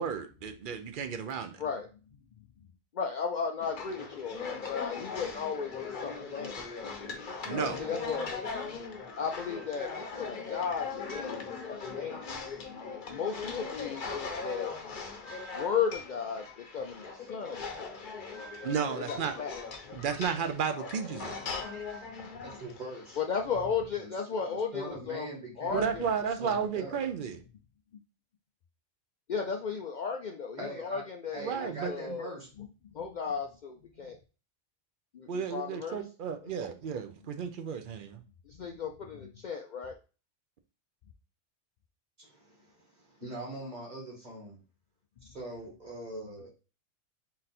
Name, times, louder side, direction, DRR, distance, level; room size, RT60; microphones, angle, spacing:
voice 1, 0.0-1.6 7.5-7.8 18.6-19.3 19.9-21.4 25.7-27.4 31.4-32.2 35.3-38.2, right 7 dB, 55° right, 0.6 m, -33 dB
voice 2, 2.9-6.7 7.8-8.4 8.7-8.8 9.2-12.3 13.1-14.8 15.5-16.5 16.7-18.0 18.9-19.5 19.8-19.9 22.1-22.3 23.2-26.0 27.9-28.0 29.3-32.3 32.6-32.7 32.9-34.2 35.1-36.0 36.4-36.7 38.5-40.0, left 6 dB, 75° left, 0.4 m, -35 dB
sound 1, 3.6-23.3, left 5 dB, 45° left, 0.8 m, -39 dB
voice 3, 22.4-23.2 24.0-24.1 24.5-25.9 26.4-27.1 30.6-31.0 31.3-32.5 42.2-44.6 45.2-46.5, right 1 dB, 35° right, 1.7 m, -42 dB
3.9 x 2.5 x 4.2 m
omnidirectional pair, 1.3 m